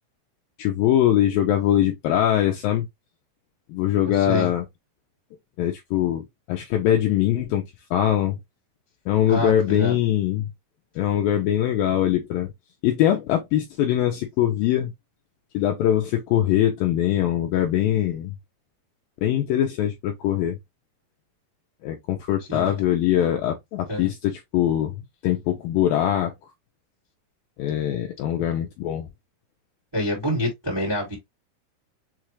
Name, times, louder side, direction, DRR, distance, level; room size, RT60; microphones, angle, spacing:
voice 1, 0.6-2.9 3.7-4.6 5.6-8.4 9.1-10.5 11.0-12.5 12.8-14.9 15.5-18.3 19.2-20.6 21.8-25.0 25.2-26.3 27.6-29.1, left 11 dB, 80° left, 2.1 m, -22 dB
voice 2, 4.2-4.5 9.3-9.9 22.5-22.7 23.9-24.1 29.9-31.1, left 1 dB, 15° right, 1.0 m, -26 dB
6.5 x 2.4 x 3.1 m
omnidirectional pair, 4.8 m